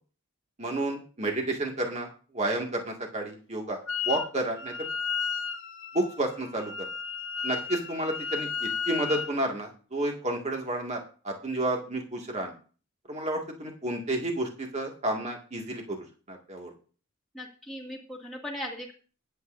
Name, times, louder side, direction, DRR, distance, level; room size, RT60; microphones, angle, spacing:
voice 1, 0.6-2.1 2.3-3.8 4.1-4.7 5.9-6.9 7.4-11.0 11.2-12.5 13.1-16.0 16.3-16.7, right 1 dB, 30° right, 1 dB, 2.1 m, -31 dB
Wind instrument woodwind instrument, 3.9-4.3 4.5-9.4, left 6 dB, 60° left, 1.1 m, -33 dB
voice 2, 17.3-18.9, left 1 dB, ahead, -4 dB, 2.2 m, -38 dB
22.5 x 8.2 x 2.6 m, 0.39 s
head